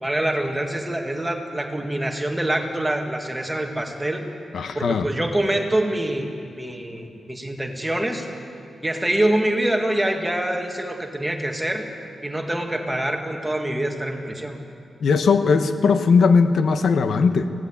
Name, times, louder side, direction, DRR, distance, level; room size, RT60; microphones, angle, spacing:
voice 1, 0.0-4.3 4.7-6.3 6.6-8.3 8.8-11.9 12.2-14.6, right 1 dB, 5° right, 2 dB, 2.0 m, -25 dB
voice 2, 4.5-5.1 15.0-17.5, left 5 dB, 65° left, 9 dB, 1.0 m, -18 dB
24.0 x 17.0 x 8.6 m, 2.5 s
wide cardioid pair, 150°, 0 cm